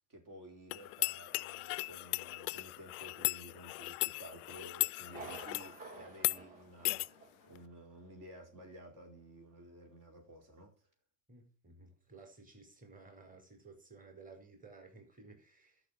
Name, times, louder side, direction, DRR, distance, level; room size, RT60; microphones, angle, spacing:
voice 1, 0.1-10.7, right 1 dB, 40° right, 4.6 m, -53 dB
sound 1, 0.7-5.7 6.1-6.4 6.8-7.1, left 28 dB, 65° left, 0.5 m, -37 dB
Thunder, 5.1-7.6 7.9-8.0 8.6-8.7, right 3 dB, 65° right, 5.8 m, -51 dB
voice 2, 11.3-15.8, right 3 dB, 15° right, 4.9 m, -56 dB
12.0 x 6.6 x 8.3 m
hypercardioid pair, 80°, 49 cm